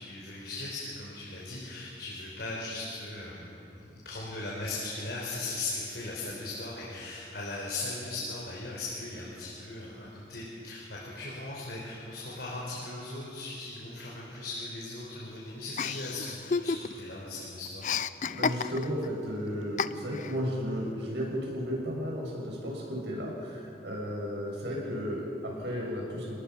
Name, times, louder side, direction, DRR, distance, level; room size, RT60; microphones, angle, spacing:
voice 1, 0.0-17.9, left 2 dB, 70° left, -5 dB, 4.7 m, -38 dB
Chuckle chortle, 15.8-17.1 17.4-19.1 19.8-20.4, left 5 dB, 45° left, 0.5 m, -31 dB
voice 2, 18.2-26.4, equal, 80° right, -2 dB, 7.5 m, -34 dB
29.5 x 19.5 x 5.9 m, 2.7 s
head